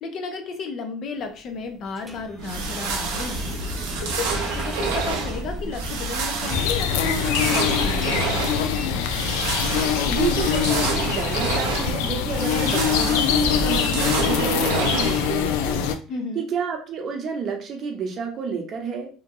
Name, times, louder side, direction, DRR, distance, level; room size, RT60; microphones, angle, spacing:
voice 1, 0.0-3.6 4.0-8.6 16.1-16.4, left 4 dB, 55° left, 5 dB, 0.6 m, -33 dB
sound 1, 1.2-15.2, equal, ahead, 0.5 m, -36 dB
sound 2, 2.4-15.5, right 4 dB, 85° right, 0.7 m, -29 dB
sound 3, 6.5-15.9, left 8 dB, 85° left, 0.3 m, -23 dB
voice 2, 10.1-15.9 16.3-19.1, right 6 dB, 45° right, 3 dB, 0.8 m, -30 dB
2.8 x 2.5 x 2.6 m, 0.39 s
supercardioid pair, 105°, 0 cm